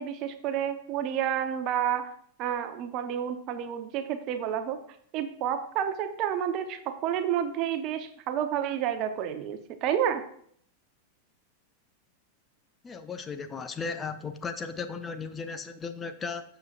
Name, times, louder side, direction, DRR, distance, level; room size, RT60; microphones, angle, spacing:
voice 1, 0.0-2.1 2.4-4.8 5.1-10.2, right 9 dB, 40° right, 9 dB, 0.9 m, -30 dB
voice 2, 12.8-16.4, left 5 dB, 20° left, 9 dB, 0.6 m, -36 dB
12.0 x 7.1 x 2.5 m, 0.63 s
figure-of-eight pair, 90°, 0 cm